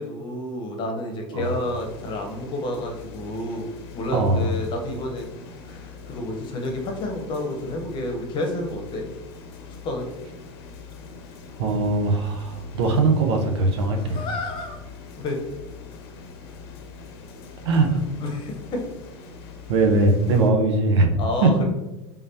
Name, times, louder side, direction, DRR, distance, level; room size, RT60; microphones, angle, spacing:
voice 1, 0.0-3.7 3.9-5.3 5.6-9.1 9.8-10.1 13.9-14.8 15.1-15.4 18.2-18.8 21.2-21.6, left 1 dB, 35° left, 2 dB, 0.9 m, -30 dB
sound 1, 1.4-20.5, left 5 dB, 65° left, 0.7 m, -43 dB
voice 2, 4.1-4.5 11.6-14.2 17.6-18.0 19.7-21.5, right 3 dB, 75° right, 3 dB, 0.8 m, -20 dB
3.6 x 3.3 x 2.8 m, 1.0 s
hypercardioid pair, 110°, 14 cm